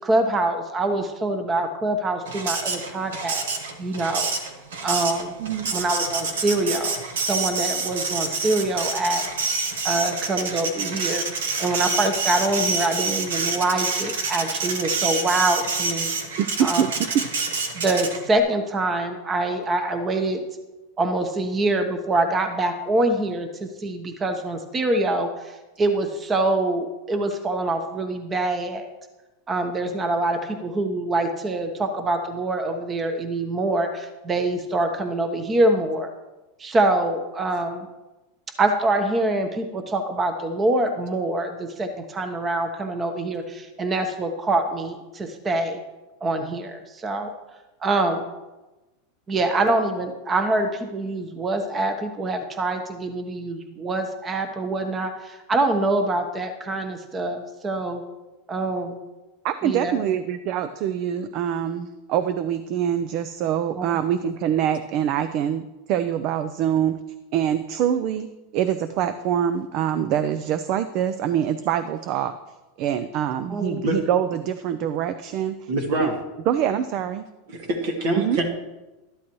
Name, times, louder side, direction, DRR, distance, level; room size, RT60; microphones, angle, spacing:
voice 1, 0.0-3.5 3.8-4.3 4.8-5.3 5.7-9.2 9.8-16.1 16.6-16.9 17.7-20.4 21.0-28.9 29.5-36.1 36.6-37.9 38.6-45.8 46.2-47.3 47.8-48.3 49.3-58.0 58.5-59.0 59.6-60.0 63.8-63.9 73.5-73.8, right 2 dB, 25° right, 6 dB, 1.1 m, -25 dB
Printer, 2.3-18.4, right 4 dB, 90° right, 1.4 m, -27 dB
voice 2, 5.4-5.7 16.4-16.9 59.4-67.0 67.3-68.3 68.5-72.3 72.8-75.7 76.0-76.1 76.5-77.3 78.1-78.4, right 9 dB, 50° right, 11 dB, 0.6 m, -24 dB
voice 3, 75.7-76.2 77.5-78.5, right 1 dB, 65° right, 2 dB, 2.5 m, -24 dB
12.5 x 11.5 x 3.2 m, 1.1 s
supercardioid pair, 120°, 0 cm